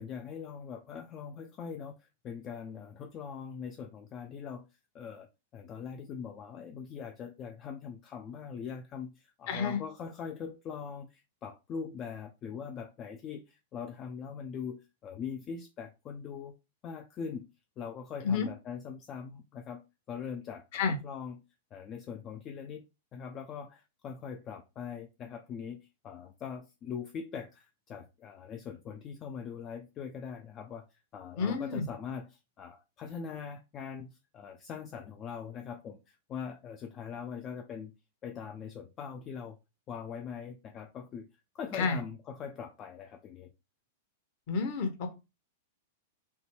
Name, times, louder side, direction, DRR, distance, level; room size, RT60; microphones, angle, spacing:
voice 1, 0.0-16.6 16.8-17.5 17.8-21.4 21.7-22.8 23.1-37.9 38.2-39.6 39.9-41.3 41.5-43.5, left 6 dB, 30° left, 0.3 m, -42 dB
voice 2, 9.5-9.8 18.2-18.5 20.7-21.0 31.4-31.9 41.7-42.0 44.5-45.1, left 5 dB, 45° left, 0.8 m, -30 dB
3.2 x 2.1 x 3.1 m
figure-of-eight pair, 95°, 0 cm